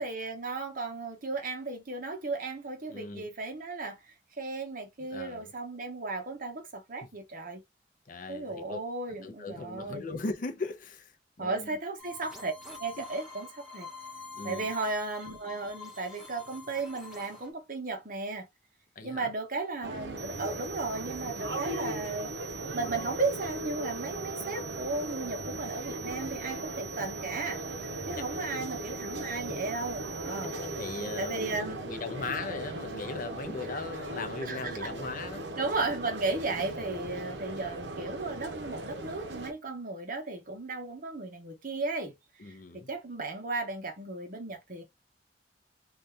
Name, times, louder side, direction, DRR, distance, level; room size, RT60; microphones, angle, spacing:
voice 1, 0.0-4.0 4.4-7.6 8.3-10.0 11.4-12.5 12.8-13.9 14.4-18.5 19.0-22.3 22.7-27.6 28.1-30.5 31.2-31.8 34.5-34.9 35.6-42.1 42.4-44.8, right 3 dB, 50° right, 0.9 m, -35 dB
voice 2, 2.9-3.3 5.1-5.5 8.1-8.8 9.2-11.1 11.4-11.8 13.0-13.1 14.3-14.7 19.0-19.3 28.2-28.8 30.4-35.5 36.6-36.7 42.4-42.9, left 3 dB, 50° left, 0.6 m, -39 dB
sound 1, 12.0-17.5, left 4 dB, 5° right, 1.2 m, -46 dB
sound 2, 19.8-39.5, right 1 dB, 80° right, 0.7 m, -38 dB
sound 3, 20.2-31.6, right 7 dB, 20° right, 0.5 m, -45 dB
2.7 x 2.3 x 3.2 m
head